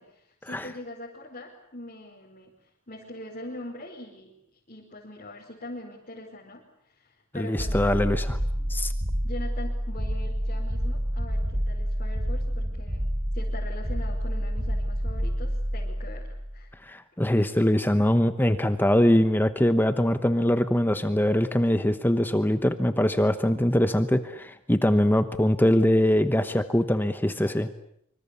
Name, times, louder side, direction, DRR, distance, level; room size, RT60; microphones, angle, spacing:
voice 1, 0.0-8.0 9.2-16.3 16.5-16.7, left 1 dB, 35° left, -3 dB, 4.9 m, -42 dB
voice 2, 7.3-8.4 8.7-8.9 16.9-27.7, left 1 dB, 10° left, 10 dB, 1.0 m, -22 dB
sound 1, 7.6-16.7, equal, 20° right, 1.8 m, -28 dB
25.5 x 25.5 x 8.4 m, 0.71 s
head